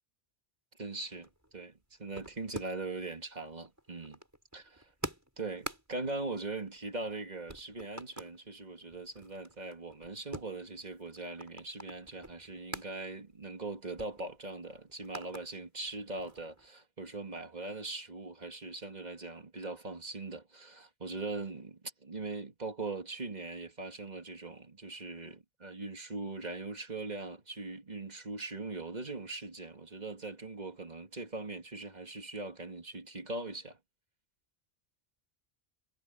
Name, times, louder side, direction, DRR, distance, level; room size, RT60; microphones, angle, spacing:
voice 1, 0.8-4.2 4.5-4.9 5.4-33.8, right 3 dB, 40° right, 2.5 m, -41 dB
sound 1, 1.1-3.0 3.3-7.2 7.5-8.4 8.8-12.9 13.3-13.4 13.7-15.5 15.9-16.7, equal, 15° right, 6.9 m, -47 dB
omnidirectional pair, 1.1 m